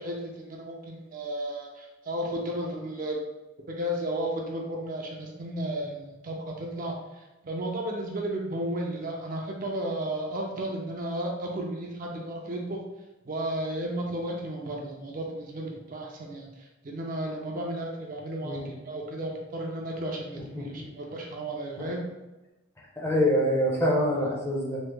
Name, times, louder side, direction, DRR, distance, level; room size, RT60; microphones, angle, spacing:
voice 1, 0.0-3.2 3.7-12.8 13.3-22.0, right 1 dB, 40° right, -1 dB, 0.4 m, -33 dB
voice 2, 20.5-20.8 21.8-21.9 23.0-24.8, equal, 10° left, -4 dB, 0.5 m, -26 dB
3.0 x 2.0 x 3.3 m, 1.0 s
head